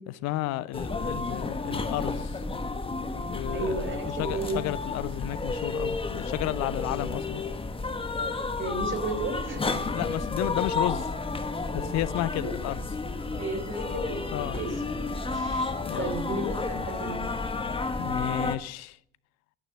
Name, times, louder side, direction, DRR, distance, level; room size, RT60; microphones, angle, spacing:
voice 1, 0.1-2.4 3.3-7.4 9.7-11.1 11.7-12.8 14.3-14.6 15.9-16.2 18.0-19.0, left 15 dB, 45° left, 0.6 m, -32 dB
sound 1, 0.7-18.6, left 3 dB, 15° left, 1.3 m, -31 dB
voice 2, 3.5-4.6 8.6-9.7 13.4-14.2 14.5-14.7 15.3-17.3, right 2 dB, 35° right, 3.5 m, -33 dB
11.5 x 9.5 x 6.3 m
figure-of-eight pair, 65°, 36 cm